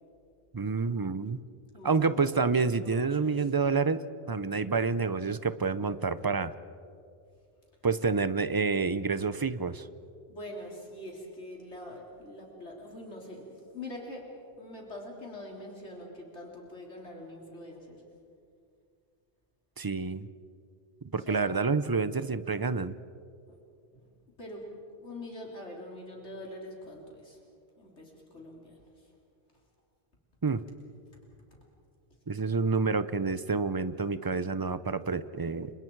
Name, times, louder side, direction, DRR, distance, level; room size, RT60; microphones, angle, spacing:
voice 1, 0.5-1.4 1.8-6.5 7.8-9.9 19.8-20.3 21.1-22.9 30.4-30.6 32.3-35.7, right 4 dB, 25° right, 14 dB, 0.5 m, -28 dB
voice 2, 1.7-2.1 2.4-3.5 10.3-14.2 14.6-18.0 21.2-21.7 24.4-24.6 25.0-27.4 27.8-28.8, left 1 dB, 85° left, -1 dB, 3.9 m, -44 dB
30.0 x 26.0 x 4.7 m, 2.4 s
omnidirectional pair, 1.1 m